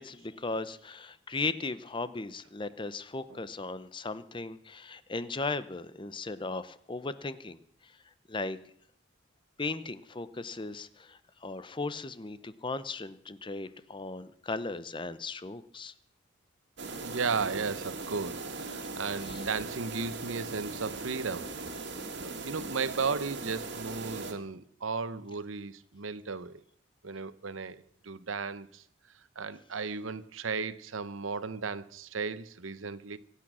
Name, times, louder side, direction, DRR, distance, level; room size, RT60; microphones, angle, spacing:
voice 1, 0.0-8.0 8.3-8.6 9.6-15.9 19.2-19.4, left 3 dB, 25° left, 0.7 m, -37 dB
sound 1, 16.8-24.3, right 3 dB, 60° right, 2.1 m, -39 dB
voice 2, 17.0-21.5 22.2-26.6 27.0-28.8 29.4-33.2, right 5 dB, 85° right, 0.9 m, -35 dB
24.5 x 8.6 x 6.2 m
head